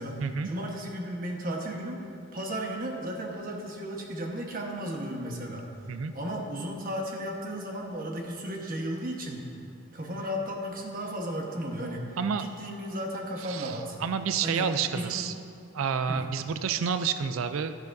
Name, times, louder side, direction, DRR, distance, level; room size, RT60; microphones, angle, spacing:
voice 1, 0.0-2.0 2.3-5.7 6.1-9.5 9.9-14.0 14.4-15.2 16.1-16.2, equal, 45° right, 0 dB, 1.2 m, -34 dB
voice 2, 13.4-15.3 15.7-17.8, right 6 dB, 75° right, 10 dB, 0.4 m, -29 dB
12.5 x 10.5 x 2.6 m, 2.5 s
head